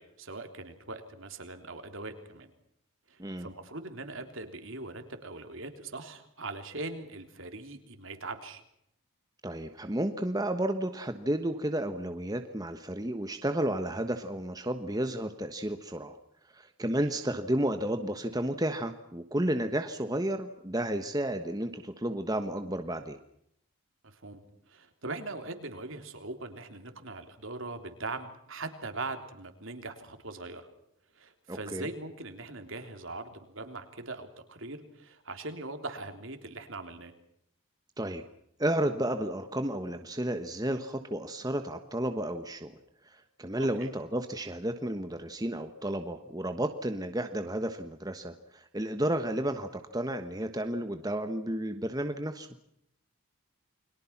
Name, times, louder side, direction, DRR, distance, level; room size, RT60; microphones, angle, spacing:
voice 1, 0.0-2.5 3.1-8.6 17.0-17.1 24.0-30.7 31.1-37.1 43.6-43.9, right 2 dB, 65° right, 6 dB, 3.5 m, -41 dB
voice 2, 9.4-16.2 16.5-23.2 31.5-31.9 38.0-38.2 38.6-42.7 43.1-52.5, right 1 dB, 15° right, 7 dB, 1.3 m, -32 dB
29.5 x 22.5 x 6.0 m, 0.75 s
head